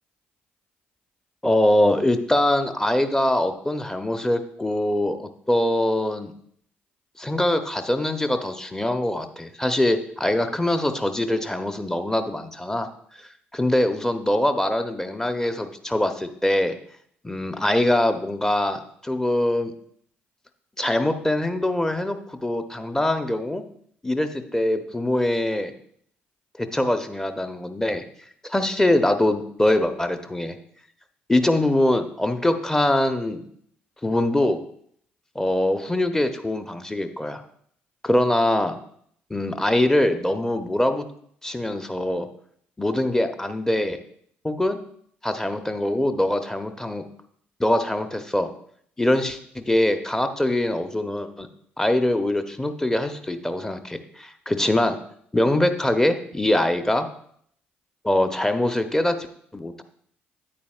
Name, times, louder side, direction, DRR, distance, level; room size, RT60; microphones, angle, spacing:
voice 1, 1.4-6.3 7.2-12.9 13.5-16.7 17.2-19.7 20.8-23.6 24.0-25.7 26.6-28.0 28.4-30.6 31.3-33.4 34.0-34.6 35.3-37.4 38.0-38.7 39.3-41.1 41.4-42.3 42.8-44.0 44.4-44.8 45.2-47.0 47.6-48.5 49.0-51.5 51.8-55.0 55.3-57.1 58.0-59.2 59.5-59.8, left 1 dB, 10° left, 8 dB, 0.8 m, -23 dB
9.4 x 8.5 x 2.4 m, 0.66 s
figure-of-eight pair, 50°, 5 cm